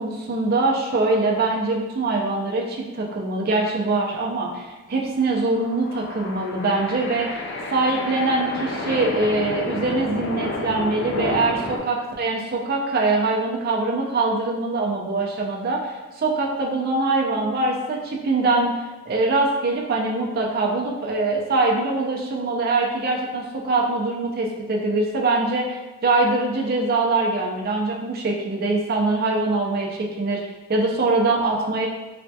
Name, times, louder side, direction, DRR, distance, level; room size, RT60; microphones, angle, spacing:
voice 1, 0.0-7.4 7.7-18.7 19.1-30.4 30.7-31.9, right 3 dB, 50° right, -1 dB, 0.5 m, -23 dB
sound 1, 5.4-11.8, left 2 dB, 60° left, 0.4 m, -30 dB
3.3 x 2.2 x 2.7 m, 1.2 s
head